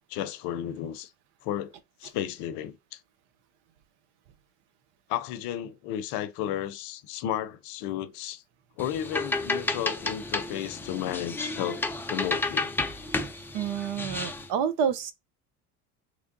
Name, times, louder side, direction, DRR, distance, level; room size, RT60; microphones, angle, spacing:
voice 1, 0.1-1.1 1.4-1.7 2.0-3.0 5.1-8.4 8.8-11.8 12.1-12.7, left 11 dB, 60° left, 0.7 m, -33 dB
sound 1, 8.8-14.5, left 2 dB, 5° left, 0.4 m, -31 dB
voice 2, 13.5-15.1, right 7 dB, 60° right, 0.8 m, -28 dB
3.3 x 3.3 x 2.6 m
hypercardioid pair, 80°, 46 cm